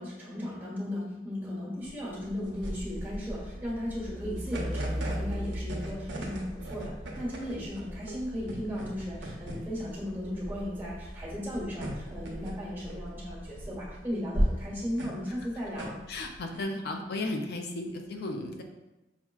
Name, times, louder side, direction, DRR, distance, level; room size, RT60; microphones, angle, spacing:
voice 1, 0.0-15.9, left 1 dB, 10° right, -7 dB, 1.2 m, -36 dB
sound 1, 1.8-16.6, right 1 dB, 90° right, 0.7 m, -37 dB
Truck, 2.9-14.1, equal, 45° right, 0.4 m, -41 dB
voice 2, 16.1-18.6, left 2 dB, 65° left, 3 dB, 0.4 m, -34 dB
5.7 x 2.1 x 2.3 m, 1.0 s
head